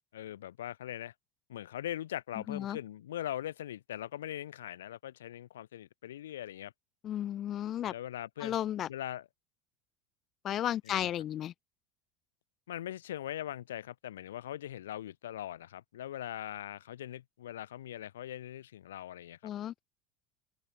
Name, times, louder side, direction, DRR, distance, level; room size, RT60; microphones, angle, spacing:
voice 1, 0.1-1.1 1.5-6.7 7.8-8.6 8.9-9.3 10.8-11.1 12.7-19.5, left 12 dB, 80° left, 4.8 m, -41 dB
voice 2, 2.5-2.8 7.0-7.9 8.4-8.9 10.4-11.5 19.4-19.7, left 11 dB, 45° left, 2.0 m, -33 dB
open air
hypercardioid pair, 75°, 0 cm